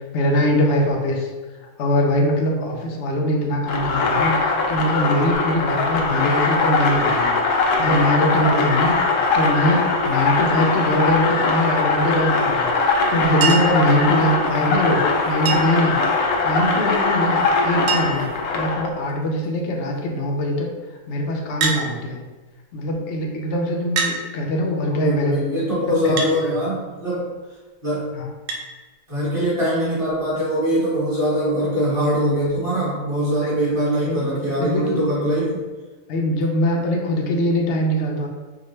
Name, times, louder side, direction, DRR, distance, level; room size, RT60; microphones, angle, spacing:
voice 1, 0.1-1.3 1.8-16.0 16.4-22.2 22.7-25.3 25.9-26.5 28.1-28.3 33.4-33.6 34.0-35.2 36.1-38.3, equal, 60° left, 0 dB, 0.8 m, -22 dB
sound 1, 3.7-18.9, left 3 dB, 80° left, 1.1 m, -21 dB
Chink clink, 13.4-13.8 15.4-15.9 17.2-17.3 17.5-17.6 17.9-18.3 19.1-19.5 21.6-21.8 22.9-23.0 24.0-24.2 26.2-26.4 28.5-28.7 30.1-30.2, right 5 dB, 85° right, 1.2 m, -24 dB
voice 2, 24.9-27.3 27.8-28.1 29.1-35.6, equal, 25° right, -11 dB, 1.1 m, -22 dB
4.8 x 2.2 x 3.1 m, 1.3 s
omnidirectional pair, 1.6 m